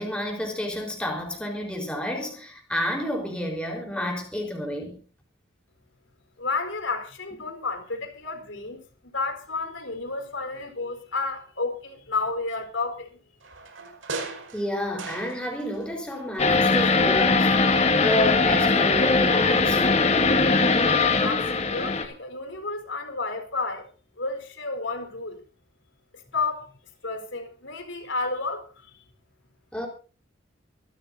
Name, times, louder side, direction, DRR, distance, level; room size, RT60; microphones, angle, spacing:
voice 1, 0.0-5.0 14.5-17.5 18.0-19.8 29.7-29.9, left 1 dB, 5° left, 4.2 m, -30 dB
voice 2, 6.4-13.1 21.2-23.9 24.2-25.4 26.3-26.7 27.0-28.9, left 3 dB, 80° left, 4.3 m, -31 dB
sound 1, 13.4-15.9 16.1-17.2 17.5-17.6, right 3 dB, 85° right, 5.4 m, -39 dB
sound 2, 16.4-22.0, left 3 dB, 35° left, 2.0 m, -20 dB
25.0 x 13.0 x 2.7 m
head